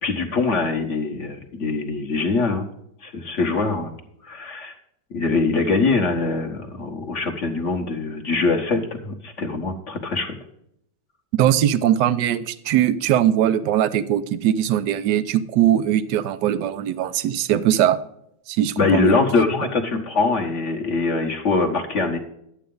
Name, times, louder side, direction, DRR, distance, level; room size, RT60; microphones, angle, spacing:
voice 1, 0.0-2.7 3.0-3.9 4.2-4.8 5.1-10.4 18.8-22.2, left 3 dB, 45° left, 4 dB, 1.5 m, -23 dB
voice 2, 11.4-18.0 18.5-19.2, right 11 dB, 75° right, 13 dB, 1.3 m, -20 dB
11.5 x 8.2 x 3.8 m, 0.74 s
omnidirectional pair, 2.0 m